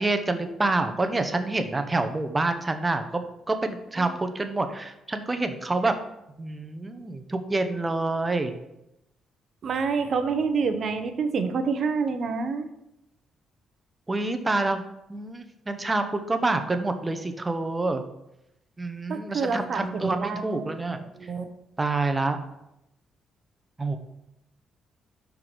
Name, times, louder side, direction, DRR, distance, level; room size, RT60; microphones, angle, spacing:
voice 1, 0.0-3.2 3.5-6.0 6.4-8.5 14.1-14.8 15.1-18.0 18.8-21.0 21.8-22.4 23.8-24.0, right 2 dB, 20° right, 8 dB, 0.8 m, -27 dB
voice 2, 9.6-12.7 19.1-20.7 21.1-21.5, right 5 dB, 55° right, 8 dB, 0.8 m, -27 dB
5.8 x 4.6 x 5.1 m, 0.86 s
cardioid pair, 90°, 0 cm